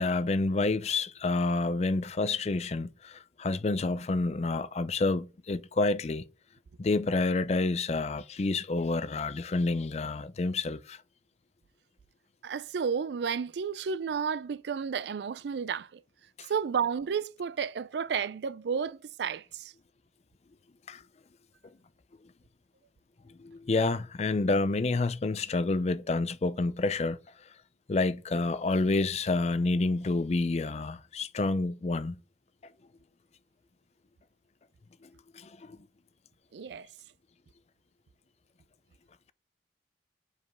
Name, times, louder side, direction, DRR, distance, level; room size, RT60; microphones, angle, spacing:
voice 1, 0.0-6.2 6.8-11.0 16.4-16.5 20.9-21.0 23.4-27.2 27.9-32.2 35.3-35.8, left 3 dB, 40° left, 0.4 m, -29 dB
voice 2, 12.4-16.0 16.5-19.7 36.5-36.9, right 6 dB, 75° right, 0.4 m, -32 dB
5.3 x 4.9 x 6.0 m
head